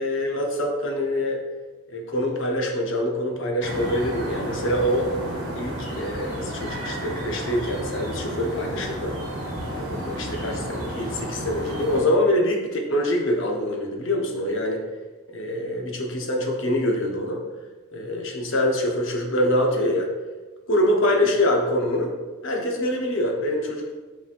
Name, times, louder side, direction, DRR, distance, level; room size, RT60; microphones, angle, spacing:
voice 1, 0.0-1.4 1.9-5.1 5.5-9.1 9.7-14.8 15.3-17.4 17.9-20.1 20.7-22.1 22.4-23.9, left 1 dB, 60° left, 1 dB, 0.7 m, -25 dB
sound 1, 3.6-12.0, equal, 75° right, 1.3 m, -32 dB
5.6 x 3.1 x 2.5 m, 1.3 s
head